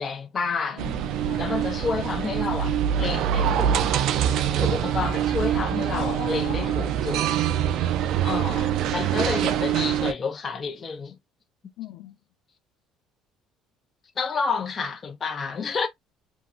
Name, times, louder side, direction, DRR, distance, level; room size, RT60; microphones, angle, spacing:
voice 1, 0.0-1.0 1.4-3.8 4.6-7.3 7.7-7.8 8.2-11.2 14.2-15.9, left 5 dB, 25° left, 0.7 m, -30 dB
voice 2, 0.7-1.5 5.9-6.8 11.8-12.2, left 11 dB, 80° left, 0.6 m, -38 dB
sound 1, 0.8-10.1, right 10 dB, 60° right, 0.4 m, -24 dB
3.0 x 2.8 x 2.4 m
cardioid pair, 150°, 0 cm